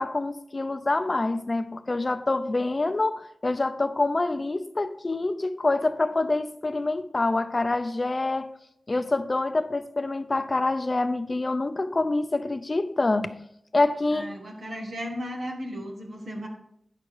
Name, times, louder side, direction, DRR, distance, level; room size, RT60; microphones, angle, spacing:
voice 1, 0.0-8.5 8.9-13.5 13.7-14.3, left 2 dB, 45° left, 0.6 m, -26 dB
voice 2, 14.1-16.5, equal, 85° right, 1.8 m, -35 dB
10.5 x 5.8 x 4.7 m
wide cardioid pair, 60°, 0 cm